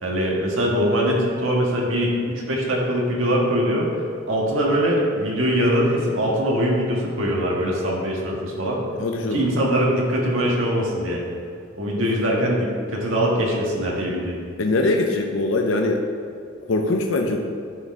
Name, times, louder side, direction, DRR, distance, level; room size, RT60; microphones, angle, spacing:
voice 1, 0.0-3.9 4.3-8.8 9.3-11.2 11.8-14.3, equal, 85° right, -3 dB, 1.5 m, -22 dB
voice 2, 9.0-9.4 14.6-16.0 16.7-17.4, left 2 dB, 75° left, 2 dB, 0.6 m, -22 dB
11.0 x 4.2 x 3.6 m, 2.4 s
head